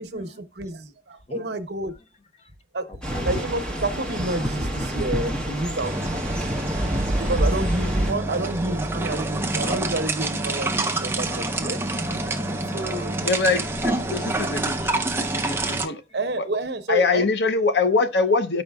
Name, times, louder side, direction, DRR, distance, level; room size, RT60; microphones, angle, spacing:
voice 1, 0.0-2.0 2.7-2.9 3.2-6.2 7.1-11.8 12.7-13.1 15.5-15.9 16.1-17.2, right 2 dB, 65° right, 0.9 m, -29 dB
voice 2, 2.9-3.3 5.8-5.9 7.7-7.8 8.2-9.3 12.3-12.9 15.4-16.2, left 2 dB, 35° left, 0.8 m, -46 dB
sound 1, 3.0-8.1, right 1 dB, 5° left, 1.1 m, -27 dB
sound 2, 5.8-15.9, right 2 dB, 15° right, 0.5 m, -27 dB
voice 3, 13.2-15.0 15.3-16.0 16.9-18.6, left 4 dB, 70° left, 0.7 m, -23 dB
13.5 x 5.3 x 2.3 m
head